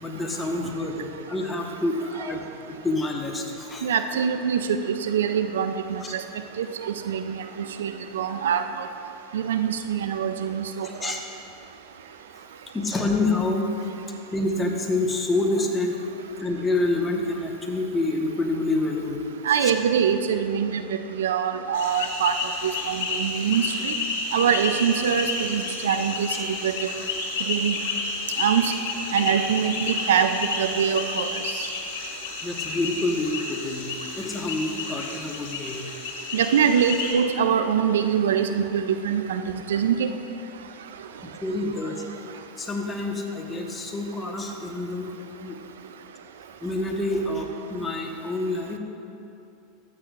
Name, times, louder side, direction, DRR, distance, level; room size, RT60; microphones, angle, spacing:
voice 1, 0.0-2.4 2.7-3.9 6.0-6.1 10.8-11.2 12.7-13.7 14.3-16.0 16.4-19.2 19.6-19.7 32.4-33.9 34.2-35.8 41.4-42.0 42.6-45.1 45.4-45.6 46.6-48.8, left 2 dB, 20° left, 1 dB, 1.3 m, -27 dB
voice 2, 3.8-6.2 6.6-8.9 9.3-11.1 19.4-22.4 22.6-23.9 24.3-26.9 27.5-27.8 28.4-28.7 29.1-31.7 36.3-39.4 39.7-40.1, right 8 dB, 80° right, 9 dB, 0.4 m, -24 dB
sound 1, 21.7-37.1, left 4 dB, 75° left, 1.7 m, -31 dB
13.5 x 8.3 x 2.5 m, 2.8 s
hypercardioid pair, 95°, 0 cm